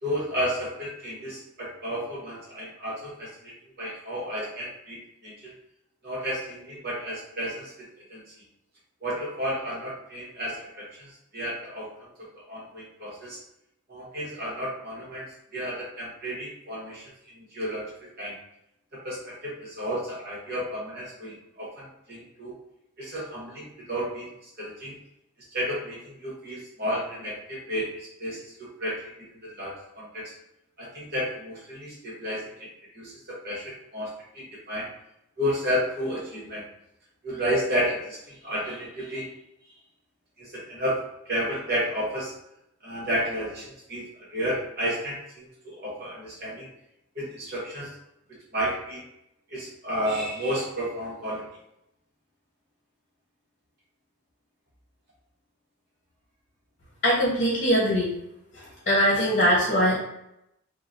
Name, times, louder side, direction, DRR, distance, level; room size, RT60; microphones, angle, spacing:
voice 1, 0.0-3.5 3.8-5.5 6.0-7.7 8.1-8.2 9.0-11.9 12.5-13.4 13.9-17.9 18.2-18.4 19.0-22.5 23.0-24.3 24.6-25.0 25.5-29.0 29.4-30.3 30.8-33.6 33.9-34.9 35.4-36.6 37.2-39.3 40.4-42.3 42.8-46.7 47.1-47.9 48.5-49.0 49.5-51.4, equal, 45° right, -6 dB, 1.2 m, -32 dB
voice 2, 57.0-58.1 58.5-60.0, equal, 35° left, -5 dB, 0.9 m, -22 dB
3.7 x 2.3 x 2.5 m, 0.82 s
head